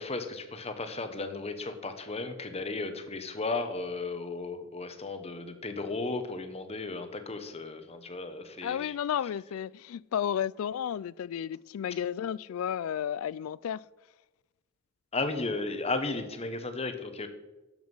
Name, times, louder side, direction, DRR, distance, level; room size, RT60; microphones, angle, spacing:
voice 1, 0.0-8.9 15.1-17.3, left 3 dB, 30° left, 1.1 m, -35 dB
voice 2, 8.6-13.8, left 9 dB, 75° left, 0.3 m, -32 dB
12.0 x 7.3 x 5.5 m
head